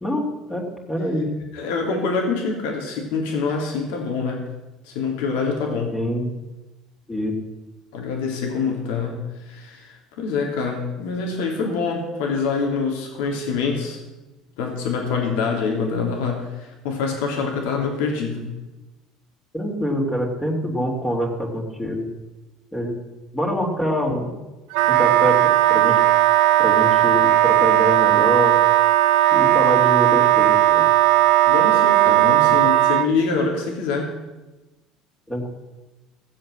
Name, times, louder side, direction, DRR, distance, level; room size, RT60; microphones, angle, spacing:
voice 1, 0.0-1.3 5.9-6.3 7.1-7.3 19.5-22.1 22.7-22.9 23.3-24.4 24.9-25.4 25.7-26.0 26.6-28.5 29.3-30.8 35.3-35.5, equal, 10° left, 0 dB, 3.0 m, -25 dB
voice 2, 1.5-4.4 4.8-5.9 7.9-14.0 14.6-18.4 31.5-34.1, left 4 dB, 85° left, 1 dB, 3.2 m, -25 dB
Wind instrument woodwind instrument, 24.7-33.1, right 15 dB, 80° right, 0.7 m, -16 dB
16.5 x 7.6 x 7.6 m, 1.1 s
cardioid pair, 125°, 0 cm